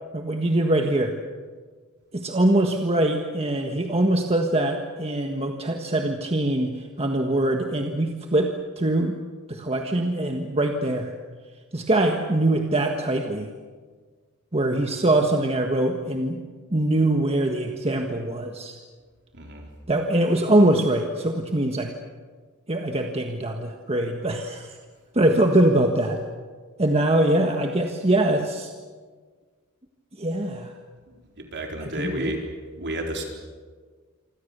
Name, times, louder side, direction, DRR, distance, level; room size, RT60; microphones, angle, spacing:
voice 1, 0.1-1.1 2.1-9.2 9.5-11.1 11.7-13.5 14.5-16.4 16.7-18.8 19.9-21.9 22.7-24.8 25.1-26.2 26.8-28.7 30.2-30.7 31.8-32.3, right 1 dB, 30° right, 3 dB, 1.6 m, -23 dB
voice 2, 19.3-19.7 31.1-32.4 32.8-33.2, right 1 dB, 55° right, 1 dB, 4.3 m, -32 dB
27.0 x 25.5 x 6.8 m, 1.5 s
head